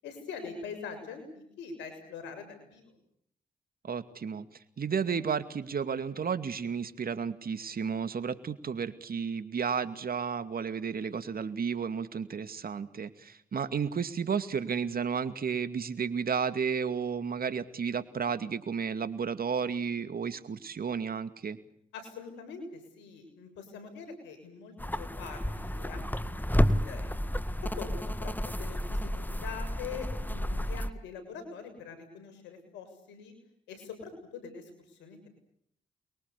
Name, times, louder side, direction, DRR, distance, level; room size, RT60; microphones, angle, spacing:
voice 1, 0.0-2.9 21.9-27.2 27.6-33.3 33.7-35.3, left 5 dB, 85° left, 8 dB, 6.9 m, -44 dB
voice 2, 3.8-4.5 4.8-21.6, right 6 dB, 55° right, 11 dB, 2.4 m, -32 dB
sound 1, 24.8-30.9, equal, 10° left, 2.0 m, -31 dB
28.5 x 23.0 x 7.0 m, 0.70 s
hypercardioid pair, 45°, 18 cm